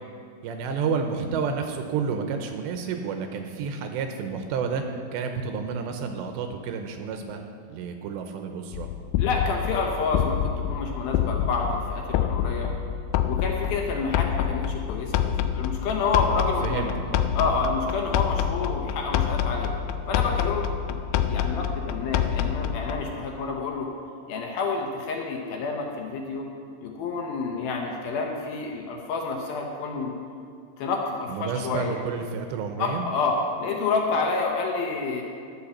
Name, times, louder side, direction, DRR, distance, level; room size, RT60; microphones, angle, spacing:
voice 1, 0.4-7.4 7.7-8.9 16.6-17.3 31.3-33.1, right 5 dB, 80° right, 5 dB, 2.9 m, -30 dB
sound 1, 8.7-23.1, left 9 dB, 90° left, 2.2 m, -27 dB
voice 2, 9.2-12.7 13.2-17.0 17.3-19.7 20.1-23.9 24.3-26.5 26.8-30.1 30.8-32.0 32.8-35.2, left 4 dB, 70° left, 1 dB, 2.5 m, -29 dB
12.0 x 8.5 x 7.2 m, 2.3 s
omnidirectional pair, 5.2 m